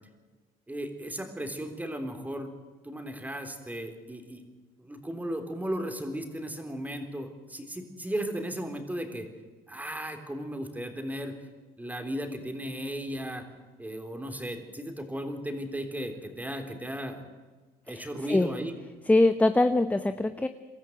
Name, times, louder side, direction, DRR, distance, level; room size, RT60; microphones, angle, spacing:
voice 1, 0.7-2.5 2.8-4.4 4.8-9.3 9.7-11.5 11.8-13.5 13.8-17.3 17.9-18.7, equal, 10° right, 5 dB, 3.5 m, -35 dB
voice 2, 17.9-18.5 19.1-20.5, left 2 dB, 10° left, 10 dB, 0.9 m, -23 dB
24.5 x 13.5 x 7.9 m, 1.4 s
cardioid pair, 110°, 17 cm